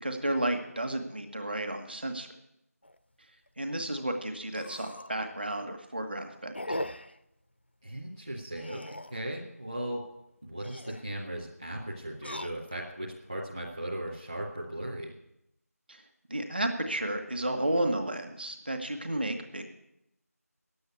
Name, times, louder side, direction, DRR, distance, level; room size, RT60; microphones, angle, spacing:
voice 1, 0.0-2.3 3.6-6.8 15.9-16.0 16.3-19.7, right 1 dB, 40° right, 5 dB, 1.3 m, -32 dB
sound 1, 2.8-3.0 3.5-3.6 3.8-3.9 4.5-5.2 5.6-5.9 6.5-7.2 8.5-9.3 10.5-11.1 12.1-12.9 13.6-14.1, left 1 dB, 40° left, 0.5 m, -40 dB
voice 2, 7.8-10.1 10.4-15.1, right 1 dB, 15° right, -6 dB, 0.7 m, -37 dB
10.5 x 7.9 x 9.5 m, 0.82 s
figure-of-eight pair, 170°, 9 cm